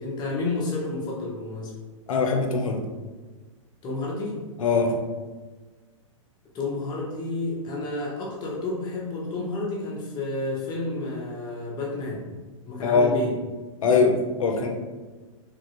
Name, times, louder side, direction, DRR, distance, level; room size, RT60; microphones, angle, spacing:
voice 1, 0.0-1.7 3.8-4.4 6.5-12.3 12.6-13.4, left 2 dB, 25° left, -4 dB, 0.9 m, -30 dB
voice 2, 2.1-2.9 4.6-5.0 12.8-13.1 13.8-14.7, left 4 dB, 80° left, 4 dB, 0.6 m, -22 dB
3.2 x 2.5 x 2.9 m, 1.3 s
hypercardioid pair, 130°, 17 cm